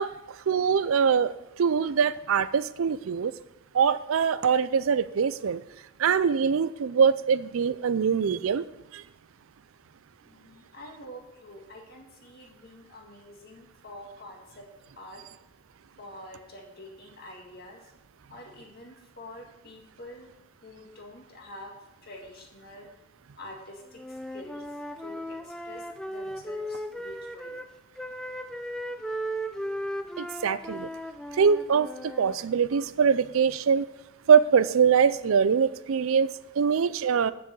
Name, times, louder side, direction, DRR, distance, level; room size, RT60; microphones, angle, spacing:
voice 1, 0.0-3.3 3.7-5.6 6.0-9.0 30.2-30.9 31.3-33.9 34.3-37.3, right 6 dB, 85° right, 15 dB, 0.4 m, -23 dB
voice 2, 10.2-14.7 15.0-15.2 16.0-17.9 18.3-20.3 20.6-21.7 22.0-22.9 23.4-27.6, left 1 dB, 50° left, 1 dB, 1.9 m, -46 dB
Wind instrument woodwind instrument, 24.0-27.7 28.0-32.4, equal, 5° left, 0.4 m, -36 dB
7.6 x 6.6 x 7.2 m, 0.95 s
head